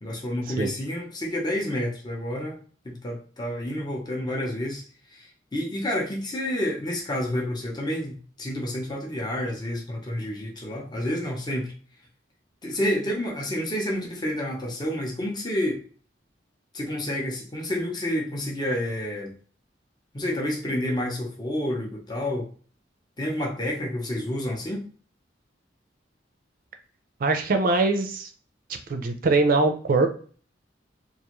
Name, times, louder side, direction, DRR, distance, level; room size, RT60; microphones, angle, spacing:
voice 1, 0.0-2.6 2.8-4.8 5.1-11.7 12.6-15.8 16.7-19.3 20.1-22.5 23.2-24.9, left 1 dB, 25° left, -1 dB, 0.6 m, -29 dB
voice 2, 27.2-28.3 28.9-30.1, right 3 dB, 50° right, 6 dB, 0.4 m, -22 dB
2.5 x 2.3 x 2.9 m, 0.42 s
head